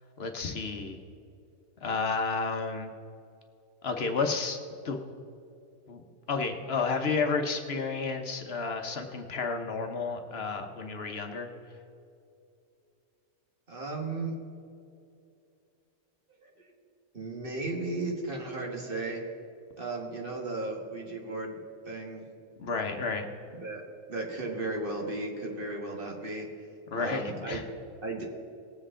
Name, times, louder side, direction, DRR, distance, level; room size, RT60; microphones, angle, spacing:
voice 1, 0.2-1.0 1.8-2.9 3.8-4.6 4.8-5.1 5.9-6.0 6.3-11.5 22.6-23.2 26.9-27.6, left 4 dB, 60° left, 4 dB, 1.1 m, -31 dB
voice 2, 13.7-14.3 16.3-16.5 17.1-19.2 19.8-21.6 21.9-22.2 23.5-23.8 24.1-26.5 27.0-27.6 28.0-28.2, right 2 dB, 45° right, -1 dB, 1.8 m, -35 dB
19.0 x 7.7 x 3.7 m, 2.7 s
omnidirectional pair, 1.2 m